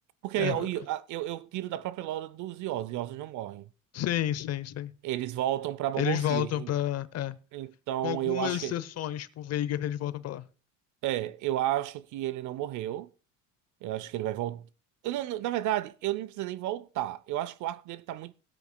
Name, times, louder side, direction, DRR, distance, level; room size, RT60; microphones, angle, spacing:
voice 1, 0.2-3.7 5.0-6.7 7.5-8.8 11.0-13.1 13.8-14.7 15.0-18.4, right 13 dB, 50° right, 0.5 m, -32 dB
voice 2, 3.9-4.9 6.0-7.4 8.0-10.4, left 11 dB, 40° left, 0.7 m, -30 dB
20.0 x 8.1 x 2.2 m
supercardioid pair, 90°, 38 cm